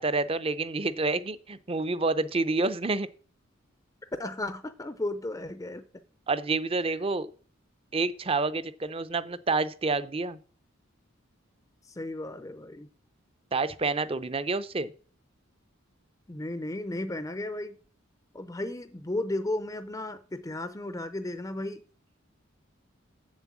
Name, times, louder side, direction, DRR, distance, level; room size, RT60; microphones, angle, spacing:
voice 1, 0.0-3.1 6.3-7.3 7.9-10.4 13.5-14.9, right 3 dB, 30° right, 0.6 m, -28 dB
voice 2, 4.2-5.8 6.8-6.9 11.8-12.9 16.3-17.8 18.3-21.8, left 1 dB, 15° left, 0.5 m, -34 dB
7.8 x 7.3 x 7.2 m
head